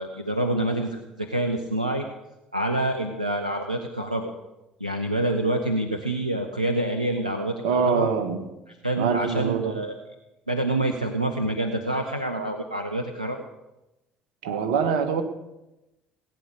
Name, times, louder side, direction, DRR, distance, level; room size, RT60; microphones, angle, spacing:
voice 1, 0.0-2.1 2.5-4.3 4.8-8.1 8.8-10.0 10.5-13.4, right 1 dB, 90° right, 5 dB, 0.7 m, -27 dB
voice 2, 7.6-8.5 9.0-9.7 14.4-15.2, right 6 dB, 65° right, 7 dB, 1.5 m, -24 dB
18.0 x 9.0 x 6.6 m, 0.96 s
figure-of-eight pair, 55°, 4 cm